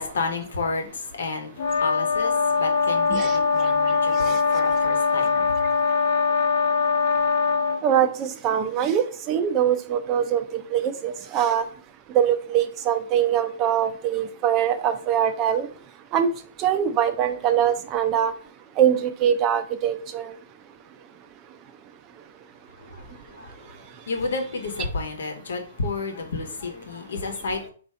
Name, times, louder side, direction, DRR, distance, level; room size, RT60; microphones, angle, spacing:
voice 1, 0.0-5.5 22.8-27.7, left 3 dB, 80° left, 1.1 m, -31 dB
sound 1, 1.6-7.8, left 4 dB, 60° left, 0.6 m, -22 dB
voice 2, 7.8-11.7 12.1-15.7 16.1-16.3 16.6-18.3 18.8-20.3, right 9 dB, 25° right, 0.4 m, -23 dB
3.6 x 2.7 x 4.3 m
hypercardioid pair, 155°, 0 cm